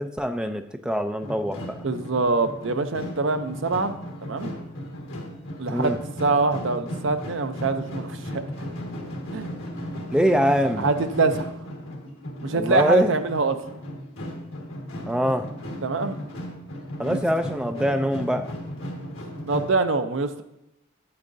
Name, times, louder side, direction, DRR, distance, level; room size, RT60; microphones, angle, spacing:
voice 1, 0.0-1.8 5.7-6.0 10.1-10.9 12.5-13.1 15.1-15.5 17.0-18.5, equal, 5° right, 7 dB, 0.4 m, -23 dB
sound 1, 1.2-19.7, equal, 70° left, 1.8 m, -36 dB
voice 2, 1.8-4.5 5.6-8.4 9.3-9.5 9.9-10.0 10.8-11.5 12.4-13.6 15.8-16.2 17.0-17.2 19.5-20.4, right 3 dB, 65° right, 9 dB, 0.6 m, -25 dB
8.6 x 8.4 x 2.6 m, 0.89 s
head